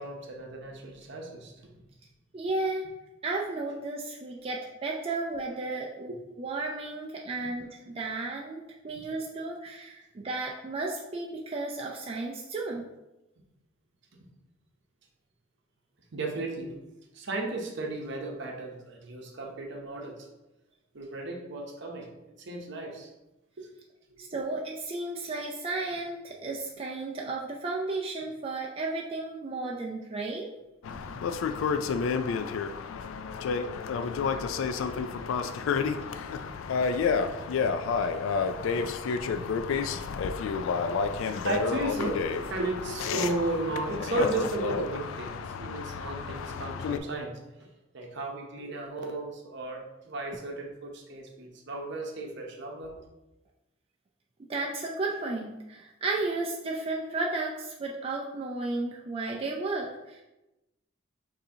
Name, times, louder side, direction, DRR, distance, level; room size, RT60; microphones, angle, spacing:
voice 1, 0.0-1.7 6.1-6.2 16.1-16.8 17.1-20.3 20.9-22.1 22.4-23.1 23.6-23.7 24.2-24.3 30.9-31.0 37.5-37.6 41.4-47.3 47.9-53.0, right 2 dB, 60° right, 1 dB, 0.8 m, -34 dB
voice 2, 2.3-2.8 3.2-12.8 24.2-30.5 54.5-60.2, right 3 dB, 30° right, -2 dB, 0.4 m, -33 dB
sound 1, 30.8-47.0, left 5 dB, 80° left, 0.3 m, -30 dB
6.5 x 2.7 x 2.7 m, 0.98 s
head